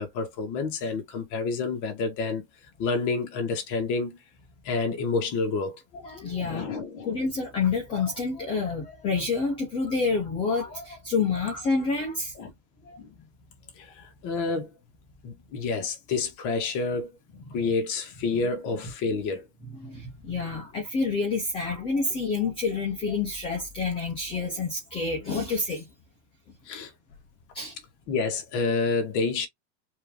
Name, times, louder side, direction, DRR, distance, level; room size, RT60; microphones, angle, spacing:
voice 1, 0.0-2.4 2.8-4.2 4.6-5.8 6.4-7.1 12.4-12.5 13.0-13.3 13.8-14.7 15.2-17.2 17.5-19.4 20.5-20.6 26.7-26.9 28.1-29.5, left 4 dB, 35° left, 1.4 m, -29 dB
voice 2, 5.9-6.7 7.0-12.3 12.8-13.0 17.4-17.6 18.3-18.4 19.8-25.9 27.5-27.7, left 4 dB, 10° left, 0.4 m, -28 dB
4.5 x 2.6 x 3.2 m
supercardioid pair, 165°, 50 cm